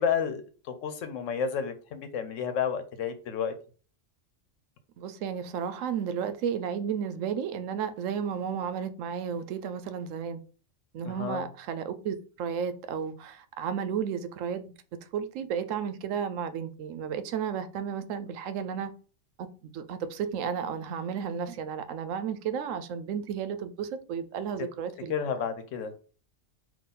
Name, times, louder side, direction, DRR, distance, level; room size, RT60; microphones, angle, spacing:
voice 1, 0.0-3.5 11.0-11.5 25.1-25.9, left 7 dB, 80° left, 1.0 m, -31 dB
voice 2, 5.0-10.4 10.9-14.7 15.1-18.9 19.4-25.2, right 7 dB, 85° right, 1.0 m, -33 dB
3.8 x 2.6 x 4.1 m
omnidirectional pair, 1.3 m